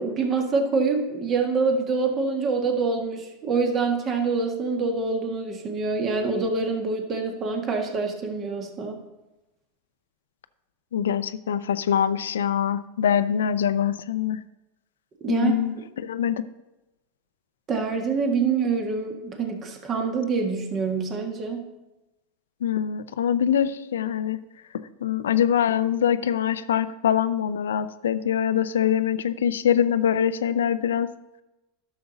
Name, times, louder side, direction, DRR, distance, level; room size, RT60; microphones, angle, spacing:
voice 1, 0.0-9.0 15.2-15.8 17.7-21.6, right 4 dB, 35° right, 3 dB, 1.7 m, -26 dB
voice 2, 10.9-14.4 15.3-16.4 22.6-24.4 24.7-31.1, left 9 dB, 85° left, 13 dB, 0.4 m, -24 dB
11.5 x 6.8 x 4.0 m, 1.0 s
hypercardioid pair, 95°, 0 cm